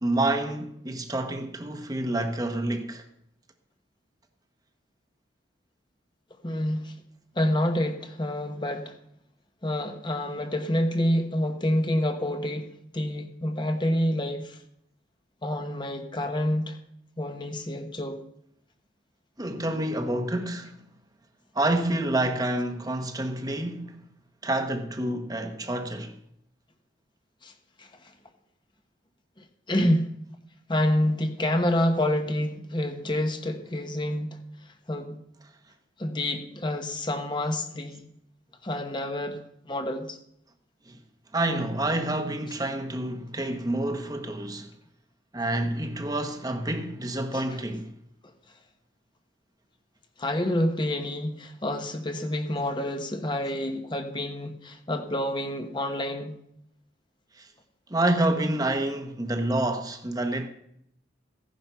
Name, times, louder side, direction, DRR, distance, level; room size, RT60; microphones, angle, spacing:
voice 1, 0.0-3.0 19.4-20.7 21.5-24.0 24.4-26.2 40.9-41.0 41.3-44.7 45.3-47.9 57.4-57.5 57.9-60.5, right 1 dB, 20° right, 1.1 m, -28 dB
voice 2, 6.4-7.0 7.4-9.0 9.6-12.7 12.9-14.6 15.4-16.8 17.2-18.2 27.4-27.5 27.8-27.9 29.7-30.1 30.7-34.4 34.9-35.2 36.0-38.1 38.6-40.2 47.3-47.4 50.2-56.4, left 1 dB, 25° left, 1.1 m, -28 dB
16.0 x 10.5 x 5.7 m
head